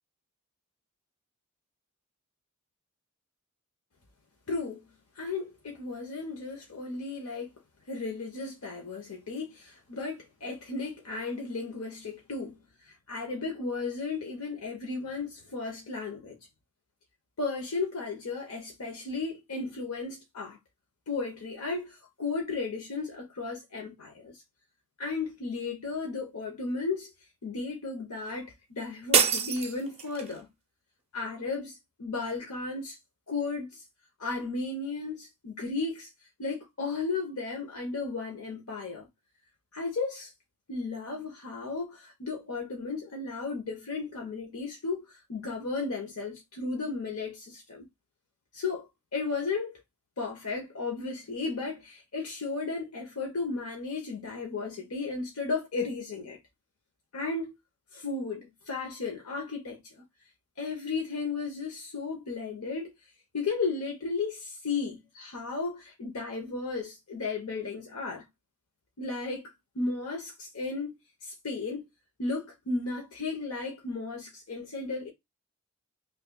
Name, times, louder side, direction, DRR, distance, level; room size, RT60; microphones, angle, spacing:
voice 1, 4.5-4.8 5.1-7.5 7.9-12.6 12.8-16.4 17.4-20.6 21.1-24.3 25.0-27.1 27.4-30.5 31.1-33.0 33.3-33.8 34.2-36.1 36.4-39.1 39.7-40.3 40.7-47.9 48.5-48.9 49.1-49.8 50.2-56.4 57.1-57.5 57.9-60.0 60.6-62.9 63.3-68.2 69.0-70.9 71.2-71.8 72.2-75.1, left 4 dB, 80° left, 0.9 m, -34 dB
sound 1, 29.1-30.4, right 6 dB, 25° right, 0.5 m, -26 dB
5.6 x 2.4 x 2.3 m
head